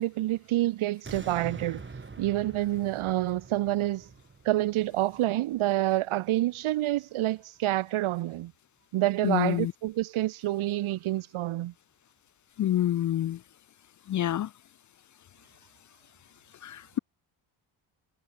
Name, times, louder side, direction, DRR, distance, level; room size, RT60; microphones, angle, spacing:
voice 1, 0.0-1.8 2.2-4.1 4.4-8.5 8.9-11.7, right 15 dB, 80° right, 1.4 m, -28 dB
sound 1, 1.0-6.2 6.6-6.7, right 4 dB, 25° right, 3.2 m, -45 dB
voice 2, 9.2-9.7 12.6-13.4 14.1-14.5 16.6-17.0, left 12 dB, 40° left, 0.4 m, -27 dB
cardioid pair, 105°, 48 cm